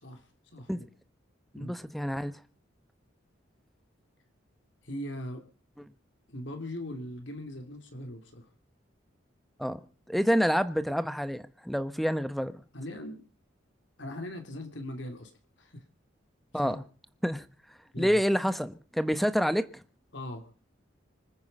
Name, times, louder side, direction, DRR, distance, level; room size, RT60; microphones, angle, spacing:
voice 1, 0.5-0.9 1.5-1.7 4.8-5.4 6.3-8.5 12.7-13.2 14.0-15.3 15.6-15.8 16.6-16.8 17.9-18.4 20.1-20.4, left 1 dB, 70° left, 2.9 m, -40 dB
voice 2, 1.6-2.4 9.6-9.8 10.1-12.6 16.5-16.8 17.2-17.4 18.0-19.7, equal, ahead, 0.9 m, -28 dB
25.5 x 9.5 x 5.4 m
head